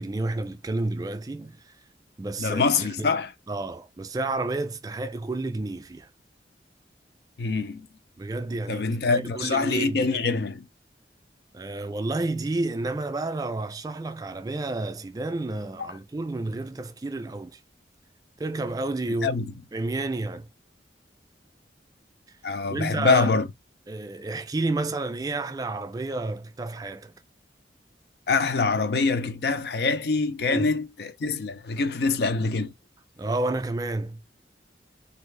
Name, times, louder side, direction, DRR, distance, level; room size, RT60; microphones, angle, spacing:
voice 1, 0.0-1.8 2.2-3.1 3.5-6.1 8.2-10.4 11.5-17.6 18.4-19.3 19.7-20.5 22.7-23.3 23.9-27.1 30.4-30.7 33.2-34.2, right 2 dB, 20° right, 0.3 m, -30 dB
voice 2, 2.4-3.3 7.4-7.9 8.7-10.7 15.8-15.9 19.2-19.5 22.4-23.5 28.3-32.7, left 4 dB, 65° left, 0.5 m, -25 dB
3.1 x 2.6 x 3.2 m
head